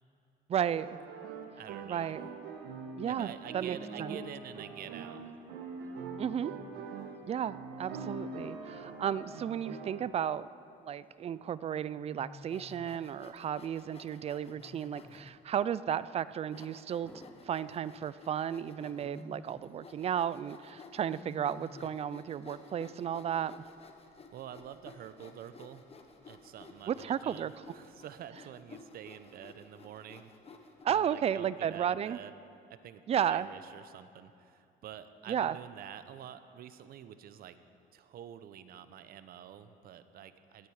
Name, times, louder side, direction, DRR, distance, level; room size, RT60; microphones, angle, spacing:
voice 1, 0.5-0.9 1.9-2.3 3.0-4.2 6.2-6.5 7.3-10.5 10.8-17.1 17.4-23.5 26.9-27.5 30.8-32.2 33.1-33.5 35.3-35.6, right 9 dB, 35° right, 17 dB, 0.4 m, -33 dB
sound 1, 0.6-10.0, right 4 dB, 90° right, 1.4 m, -43 dB
voice 2, 1.6-2.1 3.0-5.2 15.1-15.4 24.3-25.8 26.3-30.3 30.9-32.3 32.7-37.6 37.9-40.7, right 10 dB, 60° right, 12 dB, 0.8 m, -48 dB
Wild animals, 4.6-5.0 6.2-6.9 9.3-10.2 12.0-13.1 14.5-15.5 17.0-18.1 18.9-19.8 21.1-22.1, left 2 dB, 10° left, 0.6 m, -53 dB
Sawing, 12.4-15.3 15.9-16.0 16.5-30.8, left 4 dB, 35° left, 1.4 m, -54 dB
18.0 x 12.5 x 4.9 m, 2.6 s
cardioid pair, 110°, 17 cm